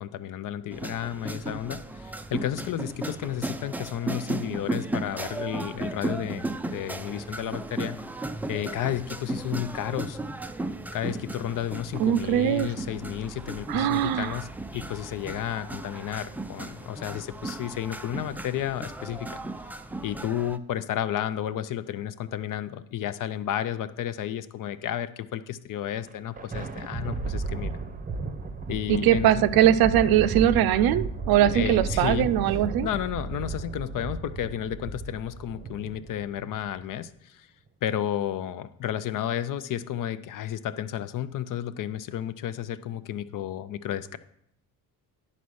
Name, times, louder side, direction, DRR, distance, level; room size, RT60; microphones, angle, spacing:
voice 1, 0.0-8.0 8.5-10.2 10.9-14.5 14.7-19.4 20.0-27.7 28.7-29.4 31.5-32.3 32.8-37.5 37.8-44.2, left 11 dB, 55° left, 13 dB, 0.6 m, -32 dB
sound 1, 0.7-20.6, right 2 dB, 5° right, 0.3 m, -35 dB
voice 2, 12.0-12.7 13.7-14.4 28.9-32.9, right 11 dB, 65° right, 14 dB, 0.5 m, -21 dB
Thunder, 25.9-36.7, right 4 dB, 20° right, 0.7 m, -34 dB
9.9 x 4.2 x 6.3 m, 0.73 s
cardioid pair, 100°, 39 cm